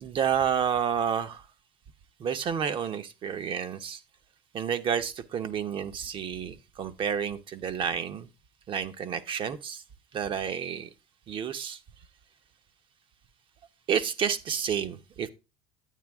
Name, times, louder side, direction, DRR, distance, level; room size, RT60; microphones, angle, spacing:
voice 1, 0.0-1.4 2.2-4.0 4.5-8.3 8.7-9.8 10.1-10.9 11.3-11.8 13.9-15.3, right 8 dB, 40° right, 0.9 m, -30 dB
9.3 x 8.8 x 3.5 m
supercardioid pair, 110°, 13 cm